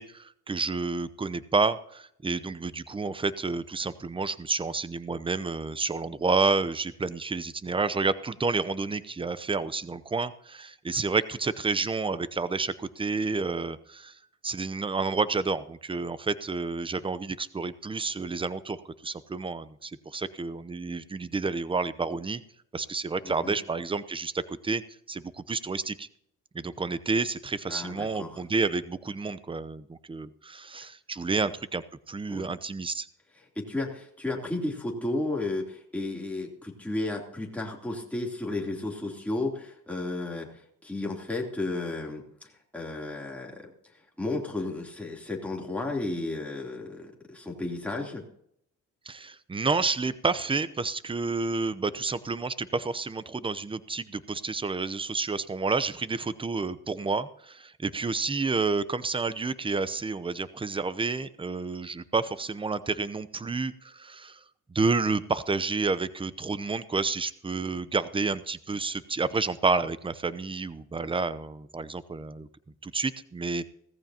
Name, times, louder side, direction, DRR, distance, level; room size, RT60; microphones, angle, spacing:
voice 1, 0.0-14.1 14.4-22.4 22.7-24.8 25.1-26.1 26.5-33.1 49.1-64.4 64.7-72.5 72.8-73.6, right 4 dB, 15° right, 15 dB, 0.7 m, -30 dB
voice 2, 23.2-23.6 27.7-28.4 31.3-31.4 32.3-32.5 33.5-40.5 40.8-43.7 44.2-48.2, left 2 dB, 5° left, -2 dB, 3.1 m, -33 dB
17.0 x 14.5 x 2.9 m, 0.70 s
cardioid pair, 90°, 30 cm